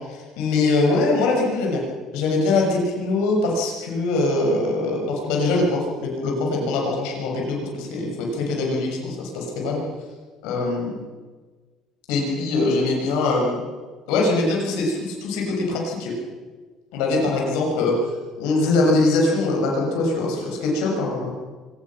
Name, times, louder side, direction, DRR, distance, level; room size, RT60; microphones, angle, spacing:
voice 1, 0.1-1.8 2.1-9.8 10.4-10.9 12.1-13.6 14.1-16.1 16.9-18.0 18.4-21.3, left 2 dB, 90° left, -1 dB, 6.9 m, -22 dB
25.0 x 18.5 x 6.1 m, 1.4 s
cardioid pair, 165°, 0 cm